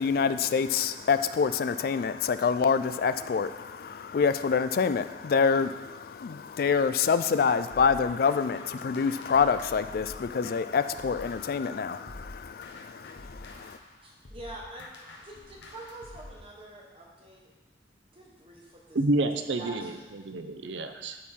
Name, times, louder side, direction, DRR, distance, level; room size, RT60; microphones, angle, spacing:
voice 1, 0.0-13.8, left 6 dB, 55° left, 12 dB, 0.3 m, -26 dB
sound 1, 7.7-11.7 12.1-16.4, left 2 dB, 90° left, 1.0 m, -47 dB
voice 2, 14.0-14.9 15.2-17.5 18.1-19.0 19.6-20.1, right 1 dB, 30° right, -3 dB, 1.3 m, -45 dB
voice 3, 18.9-21.2, right 2 dB, 85° right, 7 dB, 0.6 m, -29 dB
12.5 x 4.3 x 3.7 m, 1.2 s
head